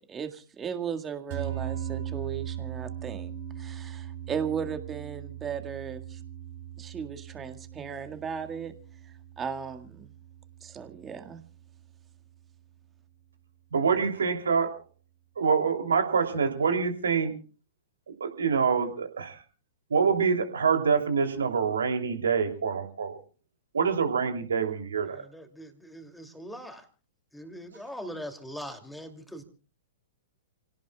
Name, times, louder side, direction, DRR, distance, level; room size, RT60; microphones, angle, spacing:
voice 1, 0.0-6.2 6.8-8.7 9.0-10.1 10.6-11.4, right 7 dB, 20° right, 7 dB, 1.9 m, -36 dB
sound 1, 1.3-11.8, right 10 dB, 45° right, 4.6 m, -39 dB
voice 2, 13.7-14.8 15.4-17.3 18.2-19.4 19.9-23.2 23.7-25.3, right 6 dB, 70° right, 4 dB, 3.1 m, -26 dB
voice 3, 25.1-26.9 27.3-29.4, equal, 5° left, 5 dB, 2.8 m, -41 dB
29.5 x 17.5 x 2.4 m, 0.37 s
figure-of-eight pair, 105°, 0 cm